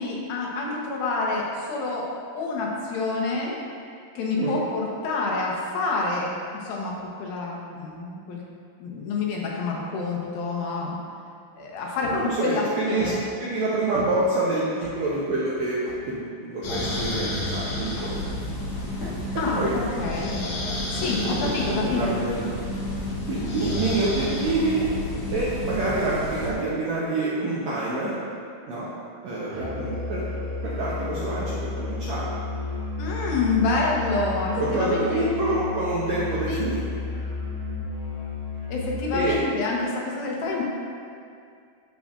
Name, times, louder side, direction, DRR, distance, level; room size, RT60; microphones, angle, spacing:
voice 1, 0.0-2.1 2.3-3.6 4.2-8.4 8.8-11.0 11.6-13.2 19.4-20.4 20.9-22.1 33.0-35.3 36.5-36.7 38.7-40.6, left 3 dB, 85° left, -2 dB, 2.9 m, -27 dB
sound 1, 12.0-12.4 13.0-13.2 13.9-14.1 14.8-15.0 15.8-16.0 16.9-17.0 17.9-18.1 19.0-19.4 20.0-20.1 21.0-21.2, left 1 dB, 45° left, 2.2 m, -38 dB
voice 2, 12.1-13.1 13.4-15.8 16.1-18.2 19.5-19.7 21.2-22.5 23.3-24.9 25.3-28.1 28.7-28.9 29.2-30.2 30.6-32.2 34.6-37.1 39.1-39.4, right 2 dB, 75° right, -7 dB, 1.6 m, -27 dB
sound 2, 16.6-26.5, left 1 dB, 65° left, 1.6 m, -30 dB
Musical instrument, 29.5-39.4, left 3 dB, 50° right, 0.8 m, -32 dB
9.0 x 7.3 x 2.5 m, 2.3 s
omnidirectional pair, 4.1 m